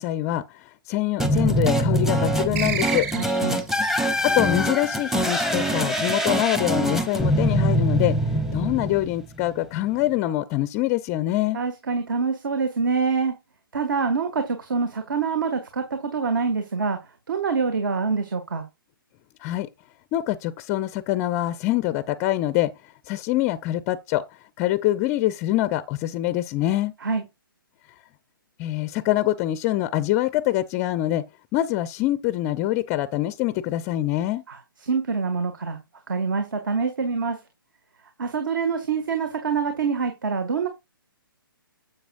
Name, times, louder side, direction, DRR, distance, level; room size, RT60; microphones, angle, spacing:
voice 1, 0.0-3.1 4.2-8.2 8.5-11.6 19.4-19.7 20.1-22.7 23.1-26.9 28.6-34.4, left 15 dB, 20° left, 0.5 m, -25 dB
sound 1, 1.2-9.4, equal, 5° right, 0.8 m, -23 dB
sound 2, 2.5-3.7, right 7 dB, 35° right, 2.9 m, -29 dB
voice 2, 3.1-3.6 11.5-13.4 13.7-17.0 17.3-18.6 27.0-27.2 34.5-34.6 34.8-35.8 36.1-37.4 38.2-40.7, right 5 dB, 60° right, 1.8 m, -25 dB
9.9 x 7.8 x 2.5 m
figure-of-eight pair, 135°, 12 cm